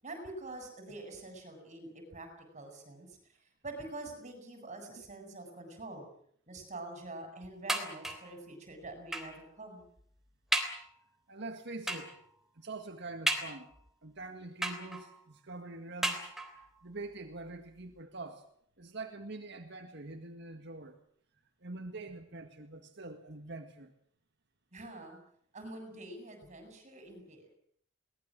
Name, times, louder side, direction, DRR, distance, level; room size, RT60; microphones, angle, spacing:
voice 1, 0.0-6.1 6.5-9.8 24.7-25.2 25.5-27.6, right 2 dB, 35° right, 6 dB, 7.6 m, -46 dB
sound 1, 7.7-8.4 9.1-9.4 10.0-10.1 10.5-10.9 11.9-12.2 13.3-13.9 14.6-15.2 16.0-16.7 17.5-17.6 17.9-18.0, right 1 dB, ahead, 3.4 m, -34 dB
voice 2, 11.3-12.1 12.6-13.7 14.0-18.5 18.8-21.0 21.6-23.9, right 2 dB, 60° right, 5 dB, 1.9 m, -45 dB
22.5 x 19.5 x 7.7 m, 0.64 s
head